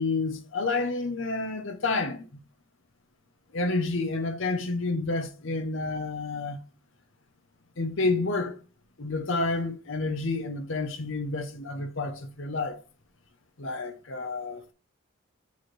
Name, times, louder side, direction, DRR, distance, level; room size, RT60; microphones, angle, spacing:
voice 1, 0.0-2.2 3.5-6.6 7.8-8.6 9.0-12.8 13.6-14.7, left 3 dB, 65° left, 0.8 m, -29 dB
6.7 x 3.3 x 4.4 m
head